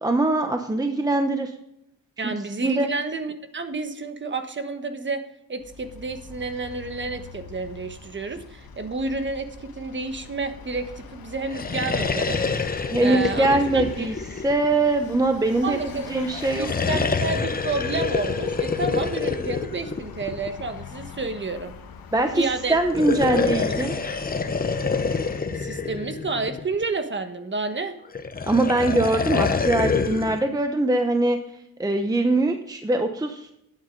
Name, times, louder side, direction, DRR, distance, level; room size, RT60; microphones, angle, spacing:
voice 1, 0.0-1.5 2.2-2.3 2.6-2.9 12.9-14.1 14.4-16.7 22.1-23.9 28.5-31.4 31.8-33.5, right 2 dB, 10° right, 5 dB, 0.8 m, -22 dB
voice 2, 2.2-5.2 5.5-12.4 12.7-14.1 15.6-16.1 16.6-21.7 22.3-22.8 23.2-23.3 23.8-23.9 25.5-27.9, right 3 dB, 30° right, 8 dB, 1.3 m, -30 dB
Vehicle, 5.6-25.4, left 5 dB, 85° left, 1.4 m, -43 dB
sound 1, 11.4-15.0 16.3-20.7 22.8-26.8 28.1-30.4, left 4 dB, 25° left, 0.8 m, -26 dB
11.0 x 9.2 x 3.9 m, 0.78 s
wide cardioid pair, 135°, 35 cm